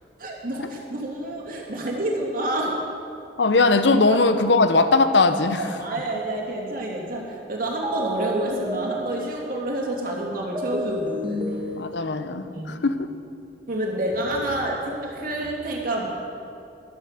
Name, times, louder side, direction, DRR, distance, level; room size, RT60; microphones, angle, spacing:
voice 1, 0.2-2.8 4.1-4.2 5.6-11.6 12.5-12.8 13.7-16.1, right 1 dB, 55° right, -1 dB, 2.6 m, -28 dB
voice 2, 3.4-5.6 11.8-13.1, left 3 dB, 85° left, 10 dB, 0.8 m, -19 dB
sound 1, 7.8-9.5 10.6-12.3, equal, 25° right, 1.4 m, -30 dB
12.5 x 11.5 x 6.6 m, 2.5 s
head